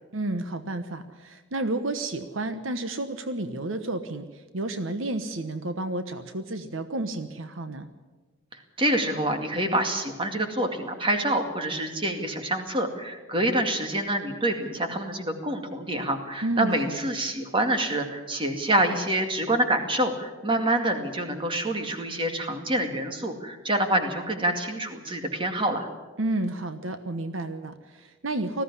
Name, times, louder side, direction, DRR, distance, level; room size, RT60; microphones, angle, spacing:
voice 1, 0.1-7.9 16.4-17.0 26.2-28.6, right 2 dB, 70° right, 10 dB, 1.2 m, -31 dB
voice 2, 8.5-25.9, right 1 dB, 25° right, 5 dB, 2.2 m, -27 dB
19.5 x 15.0 x 9.9 m, 1.3 s
head